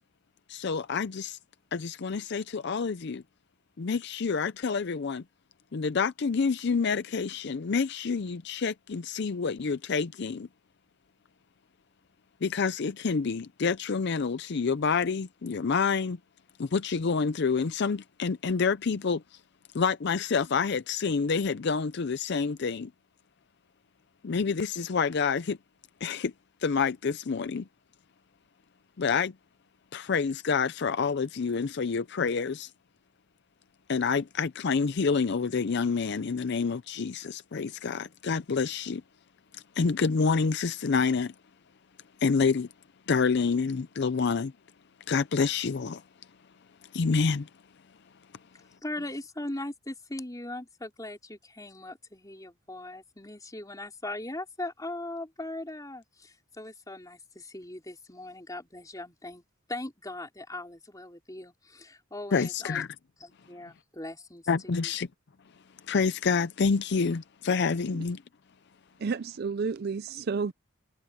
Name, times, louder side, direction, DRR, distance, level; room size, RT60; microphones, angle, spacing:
voice 1, 0.5-1.4 1.7-3.2 3.8-5.2 5.7-10.5 12.4-16.2 16.6-19.2 19.7-22.9 24.2-25.6 26.0-26.3 26.6-27.7 29.0-29.3 29.9-32.7 33.9-39.0 39.5-41.3 42.2-42.7 43.1-44.5 45.1-46.0 46.9-47.5 62.3-62.9 64.5-65.1 65.9-68.2, left 5 dB, 55° left, 0.5 m, -28 dB
voice 2, 48.8-59.4 59.7-62.8 63.2-64.9, left 1 dB, 15° left, 3.8 m, -40 dB
voice 3, 69.0-70.5, right 5 dB, 50° right, 0.4 m, -31 dB
head